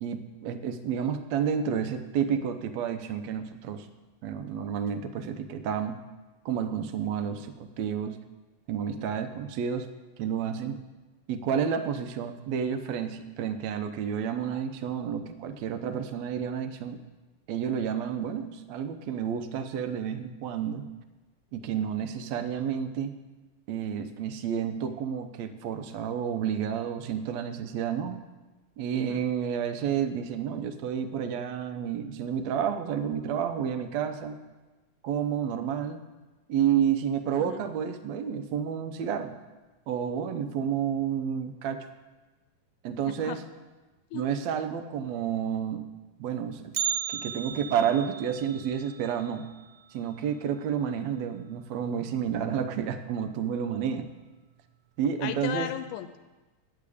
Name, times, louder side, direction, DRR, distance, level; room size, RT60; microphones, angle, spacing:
voice 1, 0.0-3.9 4.2-6.0 6.5-8.2 8.7-9.9 10.2-10.8 11.3-17.0 17.5-20.8 21.5-23.1 23.7-28.2 28.8-34.4 35.0-36.0 36.5-39.4 39.9-41.8 42.8-43.4 44.1-45.8 46.2-46.8 47.1-49.5 49.9-54.1 55.0-55.7, right 8 dB, 70° right, 9 dB, 1.9 m, -30 dB
voice 2, 43.1-43.4 44.1-44.3 55.2-56.2, left 11 dB, 85° left, 10 dB, 2.1 m, -35 dB
Bell, 46.7-50.8 51.1-51.2 51.7-51.8 52.6-52.7 53.5-53.7 54.1-54.2, right 10 dB, 90° right, 2.1 m, -36 dB
10.5 x 8.6 x 8.4 m, 1.2 s
omnidirectional pair, 3.6 m